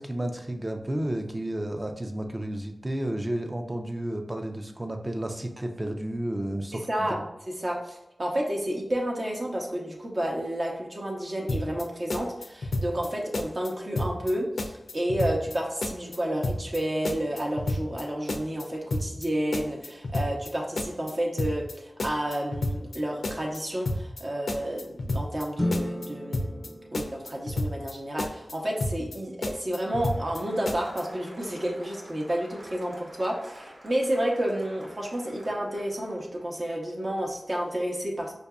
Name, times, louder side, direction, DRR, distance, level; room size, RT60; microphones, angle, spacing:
voice 1, 0.0-7.2, right 1 dB, 30° right, 4 dB, 0.5 m, -32 dB
voice 2, 6.7-38.3, right 1 dB, 50° right, -1 dB, 0.8 m, -30 dB
sound 1, 11.5-11.8 12.1-13.1 13.3-13.7 14.0-14.3 14.6-15.6 15.8-16.2 16.4-16.8 17.0-18.0 18.3-18.6 18.9-19.3 19.5-20.5 20.8-21.1 21.4-21.7 22.0-23.0 23.2-23.6 23.9-24.2 24.5-25.4 25.7-26.1 26.3-26.7 26.9-27.9 28.2-28.5 28.8-29.2 29.4-30.4 30.7-31.0, left 1 dB, 80° left, 0.4 m, -30 dB
sound 2, 25.5-28.0, left 1 dB, 20° left, 0.5 m, -33 dB
Applause, 29.6-36.4, right 1 dB, 80° right, 0.8 m, -49 dB
4.7 x 2.6 x 2.3 m, 0.90 s
cardioid pair, 45°, 0 cm